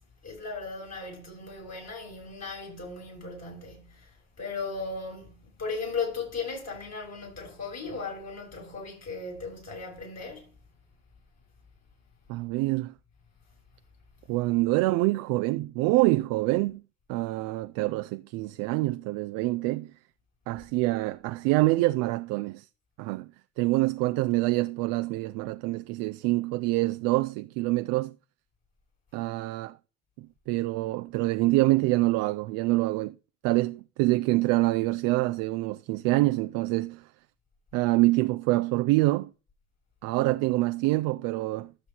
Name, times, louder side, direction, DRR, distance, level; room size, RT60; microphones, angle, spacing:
voice 1, 0.2-10.5, left 4 dB, 50° left, 7.2 m, -37 dB
voice 2, 12.3-12.9 14.3-16.8 17.1-19.9 20.5-22.7 23.0-23.3 23.6-28.1 29.1-29.8 30.2-33.1 33.4-37.1 37.7-39.3 40.0-41.7, right 20 dB, 70° right, 0.6 m, -26 dB
13.0 x 6.9 x 4.4 m
hypercardioid pair, 50°, 34 cm